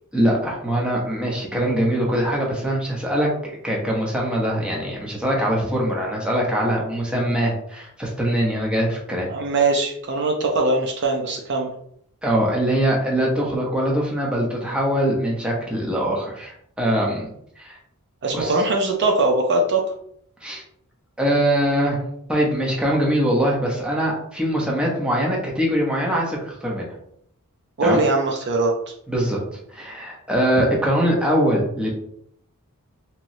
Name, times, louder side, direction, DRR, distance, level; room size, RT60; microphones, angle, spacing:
voice 1, 0.1-9.3 12.2-17.3 17.6-17.8 18.3-18.5 20.4-20.6 21.2-22.0 22.3-26.9 27.8-28.0 29.1-29.4 29.7-31.9, equal, 5° right, -3 dB, 0.8 m, -22 dB
voice 2, 9.3-11.7 18.2-19.8 27.8-28.7 30.6-30.7, right 2 dB, 50° right, 1 dB, 0.5 m, -21 dB
3.0 x 2.9 x 2.6 m, 0.69 s
head